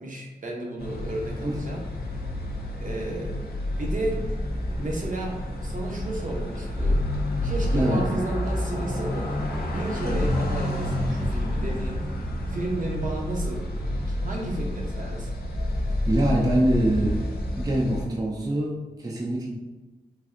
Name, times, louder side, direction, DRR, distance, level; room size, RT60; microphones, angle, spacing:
voice 1, 0.0-1.8 2.8-3.4 3.8-4.2 4.8-5.4 5.6-7.1 7.4-9.3 9.7-12.0 12.5-15.3, right 2 dB, 55° right, -1 dB, 0.7 m, -33 dB
sound 1, 0.8-18.0, left 1 dB, 75° left, 0.6 m, -29 dB
voice 2, 7.7-8.1 16.1-17.2 17.6-19.5, right 1 dB, 25° right, -2 dB, 0.4 m, -24 dB
3.3 x 2.6 x 2.4 m, 1.2 s
wide cardioid pair, 85°, 16 cm